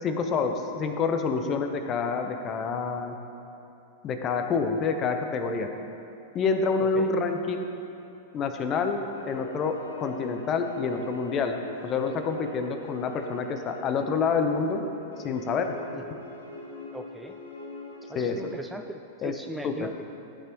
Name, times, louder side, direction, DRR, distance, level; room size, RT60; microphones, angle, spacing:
voice 1, 0.0-3.2 4.0-5.7 6.3-7.7 8.3-14.9 15.2-15.7 18.1-18.4 19.2-19.3 19.6-19.9, left 5 dB, 35° left, 6 dB, 0.8 m, -27 dB
sound 1, 9.1-18.5, left 1 dB, 85° left, 1.3 m, -43 dB
voice 2, 16.9-17.3 18.1-20.0, right 1 dB, 5° right, 5 dB, 0.4 m, -39 dB
14.5 x 6.0 x 3.1 m, 2.9 s
hypercardioid pair, 100°, 0 cm